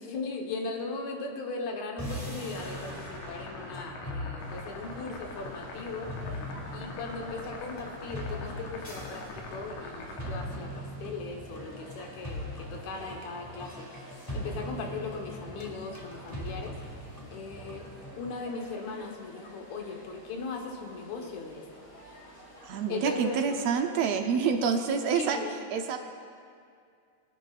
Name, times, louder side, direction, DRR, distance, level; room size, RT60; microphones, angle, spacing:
voice 1, 0.0-6.2 6.7-13.9 14.3-16.8 17.3-17.9 18.2-22.2 22.9-23.4 25.2-25.5, left 3 dB, 70° left, 1 dB, 2.6 m, -38 dB
sound 1, 2.0-18.3, left 1 dB, 10° left, 1.8 m, -41 dB
sound 2, 2.5-10.4, left 3 dB, 90° left, 2.6 m, -44 dB
sound 3, 4.4-23.8, equal, 25° left, 3.8 m, -50 dB
voice 2, 22.6-25.4 25.7-26.0, right 6 dB, 70° right, 4 dB, 1.7 m, -27 dB
22.5 x 11.0 x 2.5 m, 2.2 s
omnidirectional pair, 3.4 m